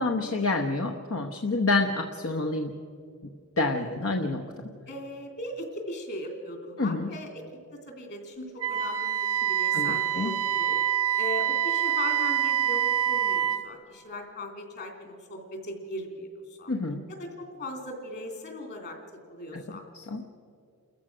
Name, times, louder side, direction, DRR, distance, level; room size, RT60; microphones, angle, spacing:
voice 1, 0.0-2.8 3.2-3.3 3.6-4.5 6.8-7.1 9.7-10.3 16.7-17.0 19.5-19.6 19.9-20.2, left 3 dB, 65° left, 4 dB, 1.0 m, -28 dB
voice 2, 3.8-4.2 4.9-7.4 7.7-10.8 11.2-16.7 17.1-19.0 19.3-19.8, left 1 dB, 50° left, 4 dB, 3.1 m, -38 dB
Wind instrument woodwind instrument, 8.6-13.6, right 10 dB, 90° right, 1.2 m, -26 dB
29.5 x 14.5 x 6.2 m, 2.4 s
head